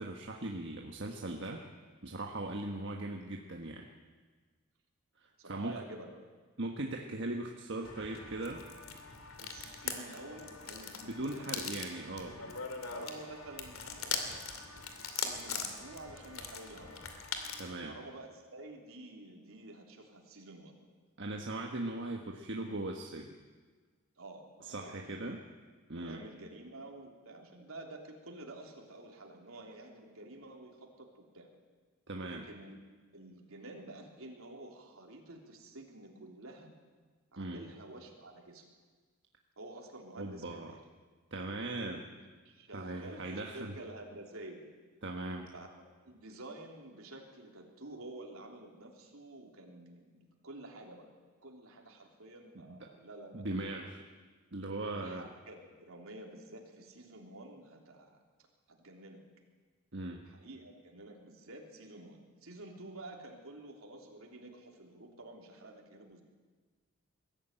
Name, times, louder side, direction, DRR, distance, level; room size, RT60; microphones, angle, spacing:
voice 1, 0.0-1.6 2.0-3.9 5.5-5.8 6.6-8.7 11.0-12.6 17.6-17.9 21.2-23.4 24.6-25.4 25.9-26.2 32.1-32.5 37.4-37.6 40.2-40.8 41.3-42.1 42.7-43.8 45.0-45.5 52.5-52.8 53.3-54.0 54.5-55.3 59.9-60.3, right 2 dB, 60° right, 1 dB, 1.4 m, -39 dB
voice 2, 5.4-6.1 9.4-11.7 12.8-17.0 17.8-20.7 24.2-25.3 26.0-31.1 31.3-31.5 32.3-32.8 33.1-36.7 37.3-38.7 39.6-40.8 42.1-44.7 45.5-45.7 46.0-51.1 51.4-53.8 54.9-58.2 58.7-59.2 60.3-66.2, right 2 dB, 85° right, 1 dB, 3.4 m, -50 dB
sound 1, 7.8-17.7, left 5 dB, 90° left, 2.6 m, -41 dB
21.5 x 14.5 x 9.1 m, 1.4 s
head